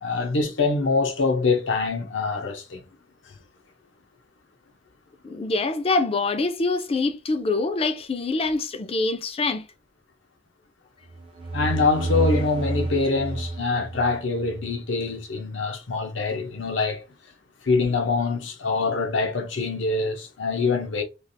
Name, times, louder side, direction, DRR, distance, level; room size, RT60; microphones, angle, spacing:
voice 1, 0.0-2.8 11.5-17.0 17.6-21.0, left 4 dB, 80° left, 0.7 m, -24 dB
voice 2, 5.2-9.7, left 3 dB, 30° left, 0.4 m, -25 dB
sound 1, 11.1-14.7, right 2 dB, 30° right, 0.4 m, -29 dB
3.3 x 2.4 x 2.6 m
head